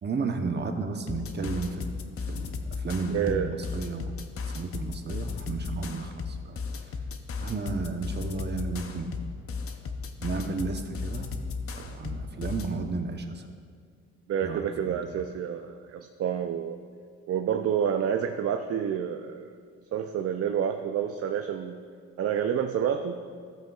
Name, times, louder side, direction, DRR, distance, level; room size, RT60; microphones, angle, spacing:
voice 1, 0.0-4.1 4.5-6.9 7.4-9.2 10.2-11.3 11.7-13.4 14.4-15.1, right 4 dB, 35° right, 5 dB, 0.9 m, -33 dB
sound 1, 1.1-12.8, left 4 dB, 50° left, 0.7 m, -36 dB
voice 2, 3.1-3.5 14.3-16.8 17.3-19.5 19.9-21.8 22.2-23.2, right 8 dB, 50° right, 5 dB, 0.5 m, -28 dB
14.5 x 7.8 x 2.4 m, 2.1 s
cardioid pair, 90°, 30 cm